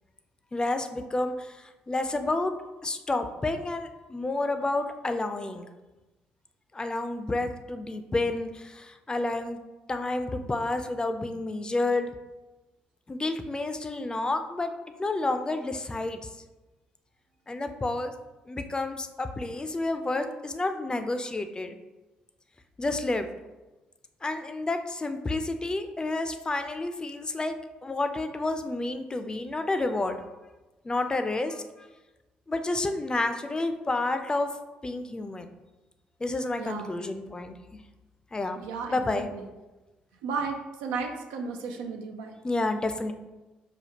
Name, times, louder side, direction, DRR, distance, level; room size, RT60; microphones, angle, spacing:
voice 1, 0.5-2.5 2.8-5.7 6.7-9.6 9.9-12.1 13.1-14.7 15.0-16.2 17.5-18.1 18.5-21.8 22.8-23.3 24.2-27.6 27.8-30.2 30.8-31.9 32.5-34.5 34.8-35.5 36.2-37.6 38.3-38.6 38.9-39.3 42.4-43.1, left 2 dB, 25° left, 8 dB, 0.4 m, -30 dB
voice 2, 38.6-39.0 39.3-39.4 40.2-42.3, right 5 dB, 85° right, 3 dB, 0.4 m, -34 dB
5.0 x 2.3 x 2.8 m, 1.1 s
supercardioid pair, 60°, 3 cm